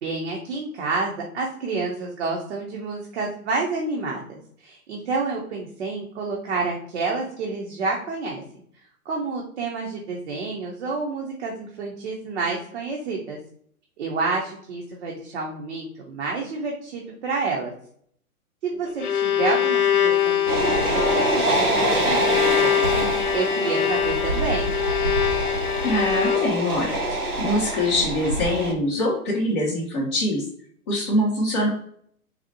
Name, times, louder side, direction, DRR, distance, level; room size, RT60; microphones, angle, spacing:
voice 1, 0.0-8.4 9.1-13.4 14.0-17.7 18.6-24.7, right 4 dB, 50° right, -1 dB, 0.7 m, -29 dB
Bowed string instrument, 18.7-26.8, left 8 dB, 80° left, 0.6 m, -23 dB
sound 1, 20.5-28.7, right 2 dB, 80° right, 1.1 m, -25 dB
voice 2, 25.8-30.4 30.9-31.7, left 1 dB, 20° left, -8 dB, 0.4 m, -24 dB
4.0 x 2.1 x 2.7 m, 0.63 s
figure-of-eight pair, 120°, 44 cm